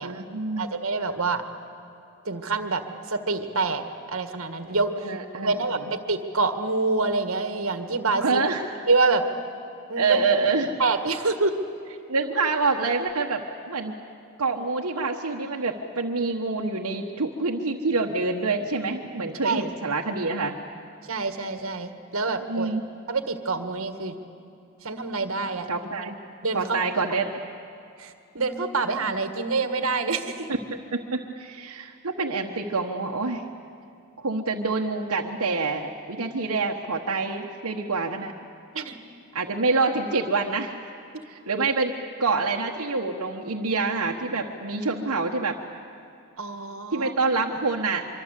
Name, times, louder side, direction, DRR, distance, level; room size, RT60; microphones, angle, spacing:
voice 1, 0.0-0.7 5.0-5.5 8.2-8.7 10.0-10.7 12.1-13.9 14.4-20.6 22.5-22.8 25.7-26.2 26.5-27.3 30.5-33.5 34.2-38.3 39.3-40.7 41.3-45.6 46.9-48.1, right 3 dB, 90° right, 0 dB, 1.3 m, -26 dB
voice 2, 0.6-1.4 2.3-2.8 3.1-3.8 4.1-8.4 8.9-9.2 9.9-10.2 10.8-11.5 11.9-12.0 19.4-19.6 21.1-22.7 23.1-24.2 24.8-25.7 26.4-26.6 28.0-30.5 38.7-39.0 46.4-47.1, right 3 dB, 70° right, 8 dB, 1.7 m, -26 dB
24.5 x 24.5 x 8.3 m, 2.6 s
head